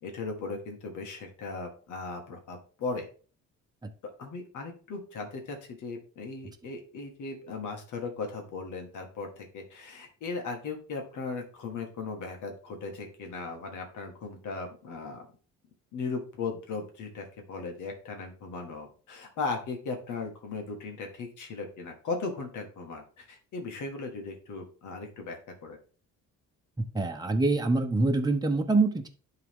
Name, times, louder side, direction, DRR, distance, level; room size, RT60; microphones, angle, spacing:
voice 1, 0.0-3.1 4.2-15.3 15.9-25.8, left 4 dB, 80° left, 3 dB, 1.9 m, -37 dB
voice 2, 26.8-29.1, right 3 dB, 15° right, 4 dB, 1.1 m, -25 dB
11.0 x 3.9 x 3.7 m, 0.40 s
cardioid pair, 90°, 30 cm